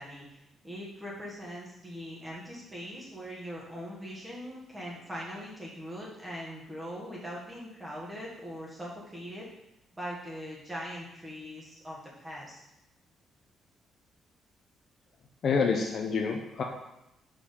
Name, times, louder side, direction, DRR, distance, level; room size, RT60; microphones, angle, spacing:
voice 1, 0.0-9.5 10.0-12.6, equal, 15° right, -5 dB, 1.6 m, -41 dB
voice 2, 15.4-16.6, left 5 dB, 55° left, 1 dB, 0.7 m, -27 dB
4.8 x 4.4 x 5.3 m, 0.88 s
cardioid pair, 90°, 0 cm